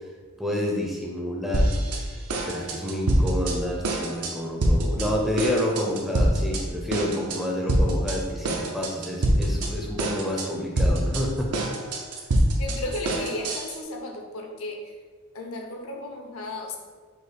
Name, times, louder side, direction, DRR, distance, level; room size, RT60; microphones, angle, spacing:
voice 1, 0.4-1.7 2.5-11.5, left 1 dB, ahead, -2 dB, 0.4 m, -29 dB
sound 1, 1.5-2.0 2.3-3.5 3.8-4.3 4.6-5.1 5.4-6.6 6.9-7.4 7.7-8.2 8.4-9.7 10.0-10.5 10.8-13.8, right 1 dB, 85° right, 0.7 m, -24 dB
voice 2, 12.6-14.9 15.3-16.8, left 1 dB, 65° left, 2 dB, 0.6 m, -34 dB
5.1 x 2.1 x 4.1 m, 1.5 s
head